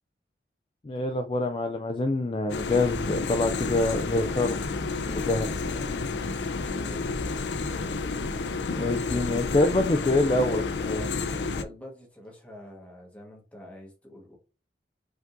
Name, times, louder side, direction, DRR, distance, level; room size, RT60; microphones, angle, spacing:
voice 1, 0.8-4.7 5.1-5.5 8.7-11.1, left 2 dB, 30° left, 0.3 m, -26 dB
sound 1, 2.5-11.6, left 4 dB, 85° left, 0.5 m, -30 dB
voice 2, 5.0-7.3 11.6-14.4, left 1 dB, 10° left, 1.3 m, -47 dB
5.1 x 3.7 x 2.6 m
head